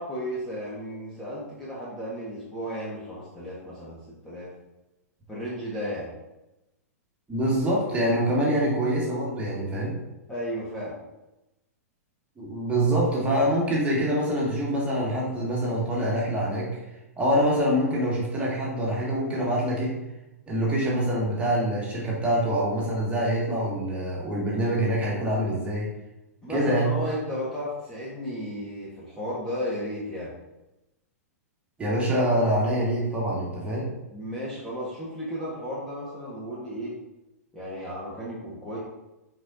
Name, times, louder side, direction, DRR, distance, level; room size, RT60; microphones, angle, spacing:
voice 1, 0.0-4.5 5.3-6.1 10.3-10.9 26.4-30.3 34.1-37.0 37.5-38.8, equal, 5° left, -8 dB, 1.6 m, -34 dB
voice 2, 7.3-10.0 12.4-16.7 17.2-19.9 20.5-25.9 26.5-26.9 31.8-33.9, equal, 15° right, -5 dB, 2.1 m, -25 dB
8.0 x 4.6 x 2.7 m, 0.96 s
figure-of-eight pair, 105°, 8 cm